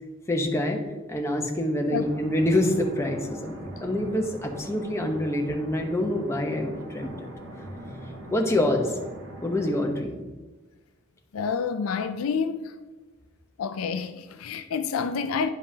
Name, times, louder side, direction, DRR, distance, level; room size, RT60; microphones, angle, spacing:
voice 1, 0.3-0.8 1.1-7.1 8.3-9.0 9.4-10.2, left 1 dB, 15° left, 0.8 m, -26 dB
sound 1, 2.0-10.0, right 1 dB, 60° right, 1.1 m, -41 dB
voice 2, 11.3-12.8 13.6-15.5, left 6 dB, 75° left, 0.4 m, -28 dB
10.0 x 5.4 x 2.7 m
head